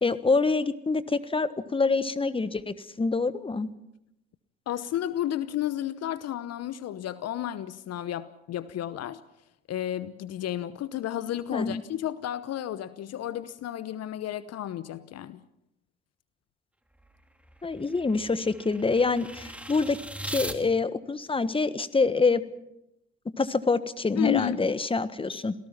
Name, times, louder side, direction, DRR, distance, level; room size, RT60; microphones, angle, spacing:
voice 1, 0.0-3.7 11.5-11.8 17.6-20.0 20.2-22.4 23.4-25.5, left 4 dB, 15° left, 1.4 m, -26 dB
voice 2, 4.7-9.2 9.7-15.4 24.1-24.6, left 12 dB, 50° left, 0.9 m, -32 dB
sound 1, 16.9-20.6, right 1 dB, 5° right, 2.8 m, -40 dB
27.0 x 17.5 x 5.9 m
hypercardioid pair, 60°, 32 cm